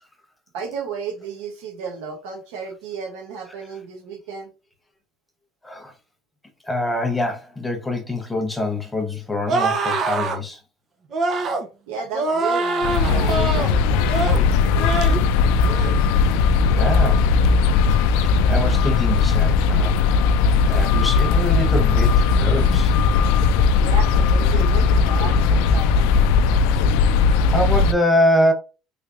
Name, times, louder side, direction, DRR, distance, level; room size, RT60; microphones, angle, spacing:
voice 1, 0.5-4.5 11.9-14.7 23.8-26.1, right 5 dB, 85° right, 1.1 m, -33 dB
voice 2, 6.7-10.6 15.9-16.0 16.7-17.3 18.2-20.2 20.6-22.9 26.8-27.0 27.5-28.5, left 1 dB, 10° left, 0.7 m, -24 dB
sound 1, 9.5-10.4 11.1-11.6 12.1-13.7 14.1-14.4 14.8-15.2 15.6-15.9, right 3 dB, 35° right, 0.7 m, -24 dB
sound 2, 12.8-27.9, left 5 dB, 80° left, 0.3 m, -18 dB
3.3 x 3.2 x 2.5 m
cardioid pair, 140°, 0 cm